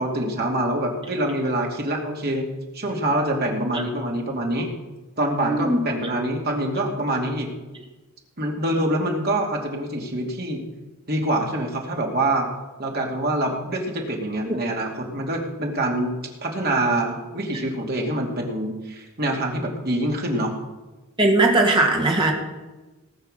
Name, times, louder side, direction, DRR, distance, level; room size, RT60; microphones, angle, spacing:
voice 1, 0.0-2.5 2.7-4.7 5.2-7.5 8.4-10.6 11.1-12.5 12.8-16.1 16.4-20.5, right 1 dB, 45° right, 0 dB, 2.6 m, -25 dB
voice 2, 5.4-5.8 14.4-14.6 21.2-22.3, right 2 dB, 25° right, 0 dB, 2.3 m, -19 dB
18.5 x 6.6 x 6.6 m, 1.1 s
head